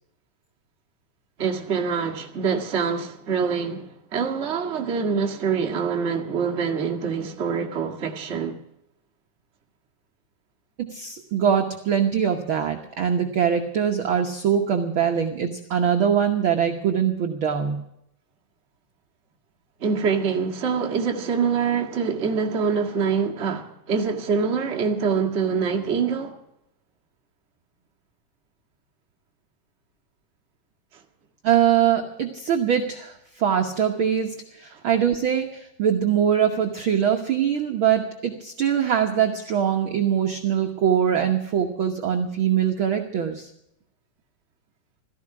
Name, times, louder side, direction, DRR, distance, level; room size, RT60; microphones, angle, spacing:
voice 1, 1.4-8.6 19.8-26.4, right 6 dB, 30° right, 1.3 m, -25 dB
voice 2, 10.8-17.8 31.4-43.5, right 8 dB, 60° right, 1.3 m, -23 dB
17.0 x 14.0 x 5.9 m
omnidirectional pair, 3.7 m